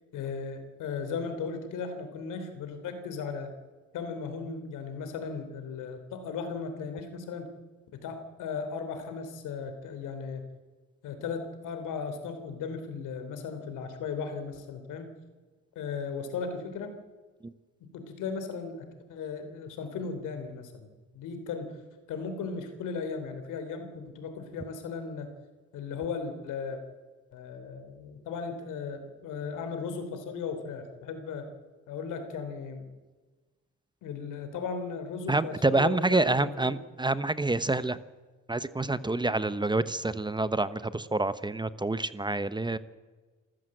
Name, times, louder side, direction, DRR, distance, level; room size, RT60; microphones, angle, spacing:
voice 1, 0.1-3.5 3.9-7.5 7.9-10.4 11.0-15.1 15.8-16.9 17.9-20.9 21.1-21.8 22.1-25.3 25.7-26.8 27.3-31.5 31.9-32.9 34.0-36.7, left 5 dB, 90° left, 7 dB, 3.6 m, -36 dB
voice 2, 35.3-38.0 38.5-42.8, right 2 dB, 15° right, 14 dB, 0.9 m, -27 dB
27.5 x 14.0 x 7.8 m, 1.3 s
cardioid pair, 90°, 30 cm